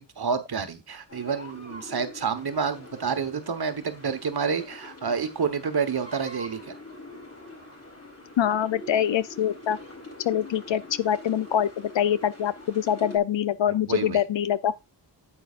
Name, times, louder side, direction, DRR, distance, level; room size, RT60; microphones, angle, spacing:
voice 1, 0.0-6.7 13.7-14.2, right 6 dB, 60° right, 1.3 m, -29 dB
sound 1, 1.1-13.2, left 2 dB, 35° left, 4.1 m, -44 dB
voice 2, 8.4-9.8 10.2-14.7, left 9 dB, 80° left, 0.7 m, -24 dB
9.5 x 8.2 x 2.5 m
wide cardioid pair, 85°, 44 cm